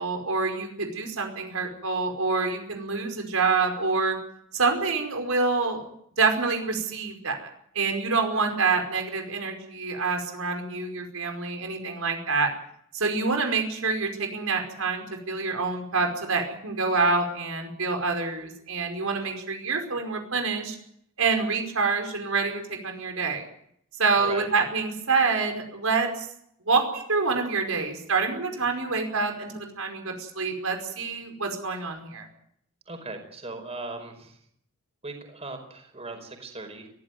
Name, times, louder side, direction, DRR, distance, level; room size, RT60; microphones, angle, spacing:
voice 1, 0.0-4.2 4.5-5.8 6.2-7.5 7.7-12.5 12.9-20.7 21.2-23.4 24.0-26.1 26.6-32.3, right 4 dB, 90° right, 4 dB, 5.1 m, -26 dB
voice 2, 24.2-24.5 32.8-34.4 35.0-36.9, right 2 dB, 30° right, 5 dB, 5.0 m, -38 dB
23.0 x 16.0 x 9.3 m, 0.70 s
head